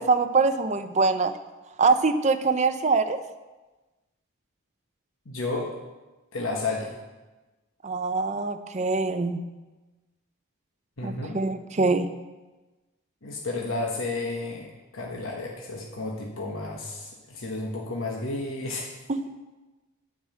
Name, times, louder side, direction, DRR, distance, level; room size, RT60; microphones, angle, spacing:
voice 1, 0.0-1.4 1.8-3.2 7.8-9.4 11.0-12.1 19.1-19.3, right 4 dB, 35° right, 9 dB, 0.6 m, -24 dB
voice 2, 5.2-5.7 6.3-7.0 11.0-11.4 13.2-19.0, left 2 dB, 65° left, -1 dB, 1.3 m, -32 dB
9.2 x 6.4 x 8.3 m, 1.2 s
head